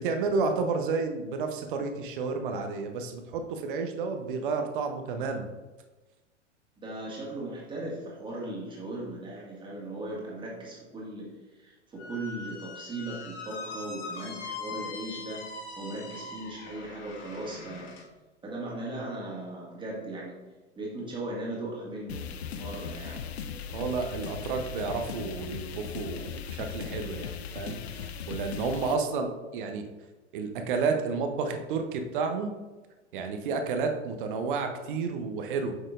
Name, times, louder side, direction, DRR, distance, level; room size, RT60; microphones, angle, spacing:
voice 1, 0.0-5.5 23.7-29.8 30.3-32.5 33.1-35.8, right 4 dB, 45° right, 5 dB, 0.8 m, -31 dB
voice 2, 6.8-15.4 15.8-17.9 18.4-20.4 20.8-23.2, right 2 dB, 15° right, -4 dB, 1.8 m, -38 dB
Squeak, 12.0-18.1, left 4 dB, 40° left, 1.1 m, -41 dB
sound 1, 22.1-29.0, left 7 dB, 60° left, 0.6 m, -38 dB
8.0 x 5.7 x 2.5 m, 1.2 s
figure-of-eight pair, 95°, 36 cm